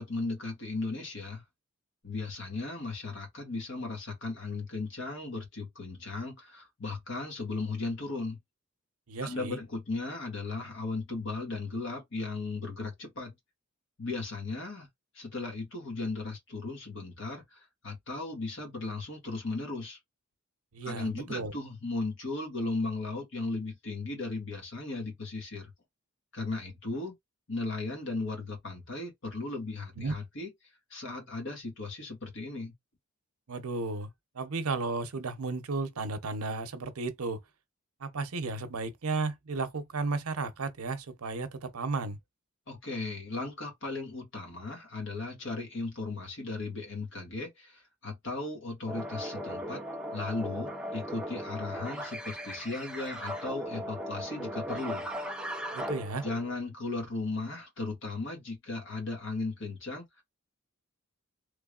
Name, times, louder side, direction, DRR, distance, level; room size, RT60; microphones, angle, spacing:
voice 1, 0.0-1.4 2.0-8.4 9.2-13.3 14.0-14.9 15.2-20.0 20.8-25.7 26.3-27.1 27.5-30.5 30.9-32.7 42.7-49.8 50.1-55.4 56.2-60.0, left 3 dB, 60° left, 1.8 m, -36 dB
voice 2, 9.1-9.6 20.7-21.5 30.0-30.1 33.5-37.4 38.0-42.2 55.7-56.2, right 3 dB, 85° right, 0.8 m, -34 dB
sound 1, 48.9-56.6, equal, 5° right, 0.4 m, -38 dB
3.5 x 3.3 x 2.4 m
head